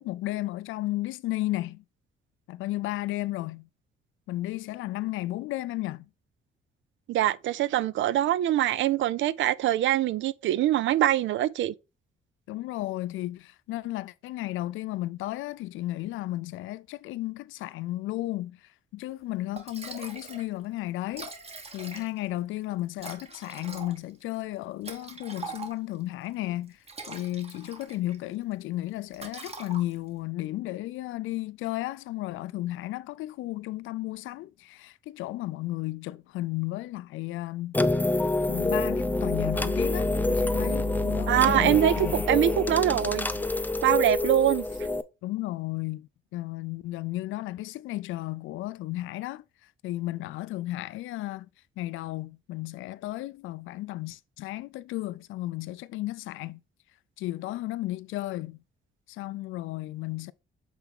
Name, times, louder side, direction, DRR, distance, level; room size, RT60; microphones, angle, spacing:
voice 1, 0.0-1.8 2.5-3.7 4.3-6.1 12.5-18.6 18.9-21.3 21.7-37.8 38.5-42.2 45.2-49.4 49.8-51.5 51.8-56.6 57.2-58.6 59.1-60.3, left 16 dB, 85° left, 0.4 m, -34 dB
voice 2, 7.1-11.7 41.3-43.3 43.8-44.7, right 13 dB, 70° right, 0.5 m, -24 dB
Liquid, 19.2-19.3 19.6-20.5 20.8-20.9 21.0-22.3 23.0-26.0 26.7-28.2 28.5-28.8 29.1-30.2, right 4 dB, 30° right, 1.5 m, -42 dB
sound 1, 37.7-45.0, left 2 dB, 10° left, 0.5 m, -27 dB
8.0 x 3.5 x 3.6 m
cardioid pair, 90°, 20 cm